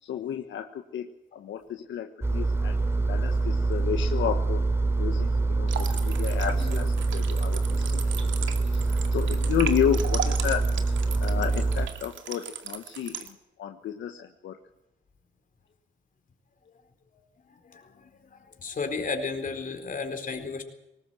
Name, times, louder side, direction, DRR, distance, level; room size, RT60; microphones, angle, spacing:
voice 1, 0.0-2.8 3.1-4.6 5.0-14.6, left 9 dB, 70° left, 5 dB, 1.4 m, -32 dB
Engine, 2.2-11.9, right 3 dB, 10° right, 3.1 m, -25 dB
sound 1, 5.7-13.3, right 8 dB, 75° right, 2.3 m, -37 dB
voice 2, 18.6-20.6, left 4 dB, 40° left, 5 dB, 4.3 m, -33 dB
20.0 x 18.5 x 7.8 m, 0.90 s
cardioid pair, 90°, 20 cm